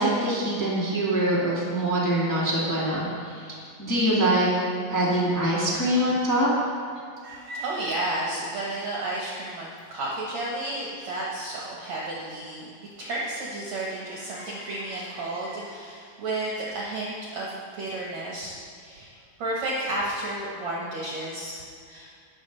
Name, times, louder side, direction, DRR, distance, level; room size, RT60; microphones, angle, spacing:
voice 1, 0.0-3.5 3.8-4.5 4.9-6.5, right 1 dB, 20° left, -7 dB, 0.5 m, -24 dB
voice 2, 7.2-12.7 13.0-22.1, right 1 dB, 60° right, -5 dB, 2.0 m, -32 dB
12.0 x 9.3 x 4.0 m, 2.3 s
omnidirectional pair, 4.4 m